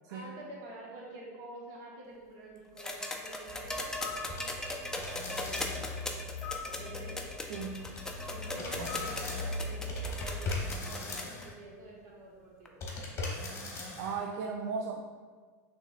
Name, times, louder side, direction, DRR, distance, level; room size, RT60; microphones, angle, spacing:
voice 1, 0.1-6.2 6.6-7.5 8.3-12.8, right 1 dB, 50° right, -3 dB, 1.4 m, -48 dB
sound 1, 2.8-11.4 12.6-12.7, left 1 dB, 5° left, 0.4 m, -39 dB
sound 2, 3.5-10.9, left 2 dB, 65° left, 0.6 m, -41 dB
sound 3, 4.3-4.7 5.0-6.0 7.5-8.3 8.6-11.5 12.8-14.2, left 3 dB, 30° left, 1.1 m, -39 dB
voice 2, 7.5-7.9 8.8-8.9 14.0-15.0, right 5 dB, 75° right, 1 dB, 0.4 m, -36 dB
5.7 x 3.3 x 2.4 m, 1.5 s
supercardioid pair, 120°, 9 cm